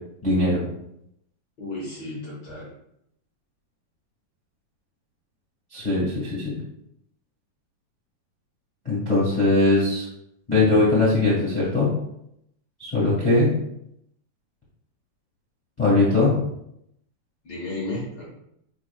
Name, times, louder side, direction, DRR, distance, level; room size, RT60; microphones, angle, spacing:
voice 1, 0.2-0.6 5.7-6.5 8.8-10.1 10.5-11.9 12.8-13.5 15.8-16.4, left 2 dB, 15° left, -9 dB, 1.4 m, -20 dB
voice 2, 1.6-2.7 17.4-18.3, left 2 dB, 90° left, -5 dB, 0.9 m, -33 dB
9.7 x 4.4 x 2.4 m, 0.77 s
omnidirectional pair, 4.3 m